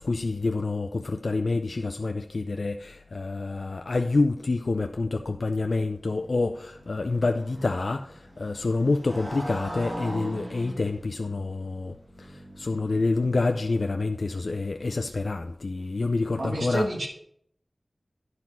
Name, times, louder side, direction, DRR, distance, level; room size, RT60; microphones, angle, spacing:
voice 1, 0.0-16.9, left 3 dB, 75° left, 0.4 m, -27 dB
Motorcycle, 6.0-14.0, right 1 dB, 30° right, 1.8 m, -41 dB
voice 2, 16.4-17.1, right 1 dB, 90° right, 1.5 m, -29 dB
10.5 x 4.1 x 5.9 m
wide cardioid pair, 60°, 0 cm